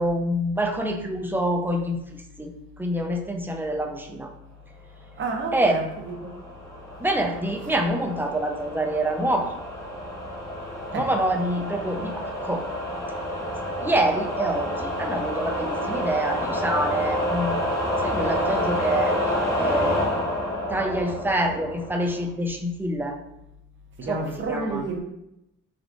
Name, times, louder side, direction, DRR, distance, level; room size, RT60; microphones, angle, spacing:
voice 1, 0.0-2.5 2.8-4.3 5.5-5.8 7.0-9.6 10.9-12.7 13.8-17.6 18.0-19.3 19.5-20.2 20.7-23.2 24.0-24.9, right 1 dB, 5° right, 3 dB, 0.3 m, -26 dB
voice 2, 5.2-6.3 10.9-11.1 24.0-25.0, right 3 dB, 40° right, 2 dB, 0.6 m, -30 dB
sound 1, 5.8-22.3, equal, 10° left, 0.9 m, -29 dB
3.6 x 2.3 x 2.4 m, 0.83 s
cardioid pair, 90°, 30 cm